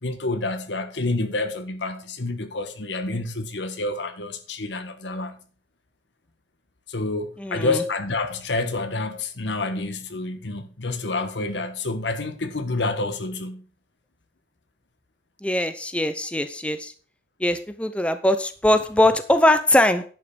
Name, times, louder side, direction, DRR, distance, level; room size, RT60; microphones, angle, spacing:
voice 1, 0.0-5.4 6.9-13.6, left 2 dB, 90° left, 1.3 m, -28 dB
voice 2, 7.4-7.8 15.4-16.9 17.4-20.0, left 1 dB, 5° left, 0.7 m, -21 dB
10.5 x 5.6 x 5.2 m
head